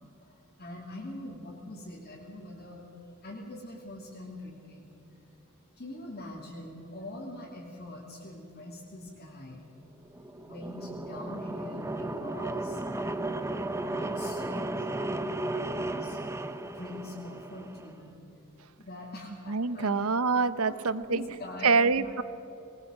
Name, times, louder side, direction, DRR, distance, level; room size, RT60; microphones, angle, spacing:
voice 1, 0.2-2.9 3.2-5.2 5.7-9.7 10.4-13.3 13.8-16.2 16.7-18.2 18.8-20.1 20.6-22.1, left 1 dB, 45° left, -5 dB, 3.0 m, -43 dB
sound 1, 10.0-17.9, right 2 dB, 15° right, 0.8 m, -34 dB
voice 2, 19.5-21.3 21.6-22.2, right 4 dB, 75° right, 14 dB, 0.8 m, -25 dB
21.0 x 20.0 x 7.7 m, 3.0 s
head